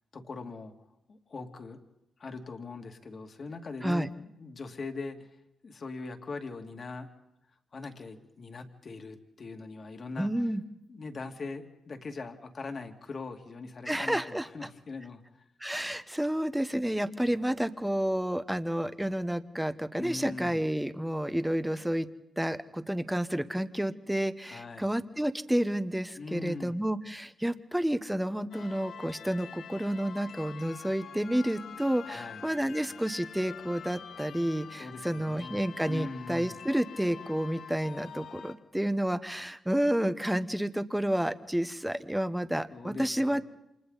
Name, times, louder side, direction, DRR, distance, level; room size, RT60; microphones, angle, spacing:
voice 1, 0.1-0.7 1.1-1.8 2.2-5.3 5.6-7.1 7.7-10.3 10.9-15.4 19.9-20.6 24.5-24.9 26.2-26.8 32.0-32.4 34.8-36.6 42.7-43.4, left 3 dB, 40° left, 5 dB, 2.4 m, -41 dB
voice 2, 10.2-10.6 13.9-14.5 15.6-22.1 22.4-43.4, right 1 dB, 5° right, 10 dB, 1.1 m, -30 dB
sound 1, 28.5-38.6, left 7 dB, 75° left, 2.0 m, -46 dB
29.5 x 27.5 x 4.1 m, 0.86 s
cardioid pair, 130°, 0 cm